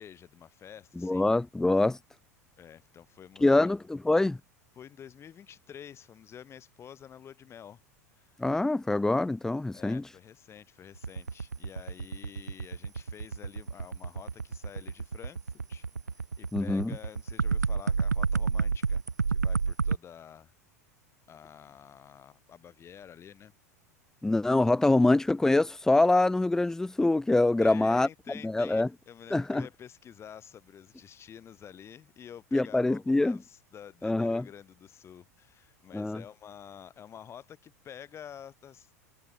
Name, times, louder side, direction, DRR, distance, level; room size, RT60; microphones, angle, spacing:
voice 1, 0.0-1.3 2.6-3.7 4.8-7.8 8.1-8.4 9.7-15.4 15.7-15.9 16.1-19.0 19.3-20.5 21.3-23.5 27.6-38.9, left 9 dB, 30° left, 7.9 m, -49 dB
voice 2, 1.0-2.0 3.4-4.4 8.4-10.0 16.5-16.9 24.2-28.1 28.4-28.9 29.3-29.7 32.5-33.4 34.0-34.4 35.9-36.2, left 2 dB, 5° left, 0.4 m, -25 dB
sound 1, 11.0-20.0, right 5 dB, 90° right, 0.5 m, -30 dB
figure-of-eight pair, 85°, 9 cm